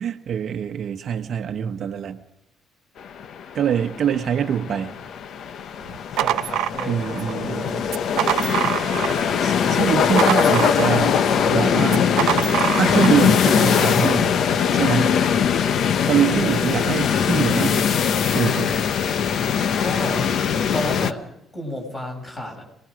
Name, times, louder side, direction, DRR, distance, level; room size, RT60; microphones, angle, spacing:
voice 1, 0.0-2.2 3.5-4.9 6.8-7.8 9.4-11.2 11.5-12.1 12.8-14.4 14.7-15.2 16.1-17.9 18.3-18.7, right 8 dB, 45° right, 6 dB, 1.1 m, -24 dB
sound 1, 3.0-21.1, left 7 dB, 50° left, 0.9 m, -21 dB
sound 2, 5.8-7.3 7.8-9.3 9.6-11.2 11.9-13.2, right 13 dB, 85° right, 0.7 m, -25 dB
voice 2, 6.1-7.8 8.3-9.3 19.8-20.3 20.7-22.6, left 1 dB, 20° left, 1 dB, 7.4 m, -32 dB
27.0 x 20.0 x 5.1 m, 0.78 s
cardioid pair, 170°, 0 cm